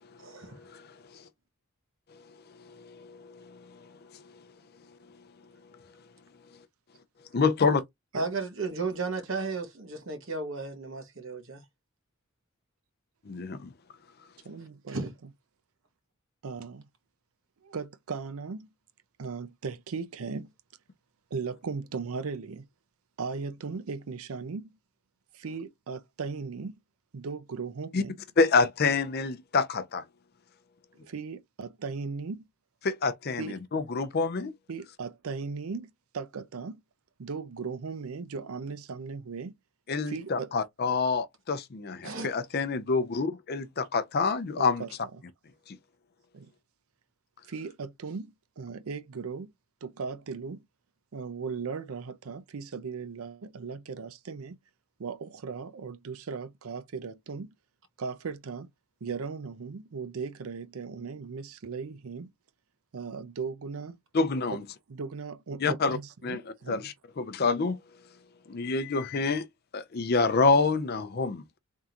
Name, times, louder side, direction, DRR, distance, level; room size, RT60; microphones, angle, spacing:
voice 1, 0.2-0.6 8.1-11.6 14.9-15.1 42.0-42.3, right 3 dB, 60° right, 1.2 m, -34 dB
voice 2, 2.7-3.8 7.3-7.8 13.3-13.7 27.9-28.0 28.4-30.0 32.8-34.5 39.9-44.8 45.7-45.8 64.1-64.6 65.6-66.0 66.2-66.4 66.7-67.8 68.5-69.4 69.7-71.4, left 4 dB, 45° left, 0.5 m, -27 dB
voice 3, 14.4-15.1 16.4-16.8 17.6-18.7 19.2-20.5 21.3-22.7 23.2-24.7 25.3-26.7 27.1-28.2 31.0-32.4 33.4-33.6 34.7-36.8 37.2-39.5 40.0-40.5 44.6-45.2 46.3-46.5 47.5-49.5 49.8-50.6 51.1-54.6 55.0-57.5 58.0-58.7 59.0-62.3 62.9-64.0 64.5-64.6 64.9-66.9, right 5 dB, 75° right, 0.5 m, -37 dB
3.7 x 3.6 x 2.8 m
head